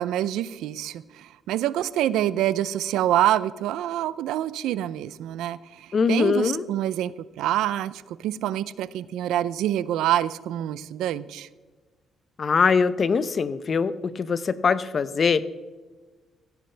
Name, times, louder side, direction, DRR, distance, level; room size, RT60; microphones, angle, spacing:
voice 1, 0.0-11.5, right 12 dB, 90° right, 18 dB, 0.5 m, -26 dB
voice 2, 5.9-6.6 12.4-15.5, left 5 dB, 45° left, 15 dB, 0.7 m, -22 dB
15.5 x 15.5 x 3.4 m, 1.3 s
cardioid pair, 90°, 0 cm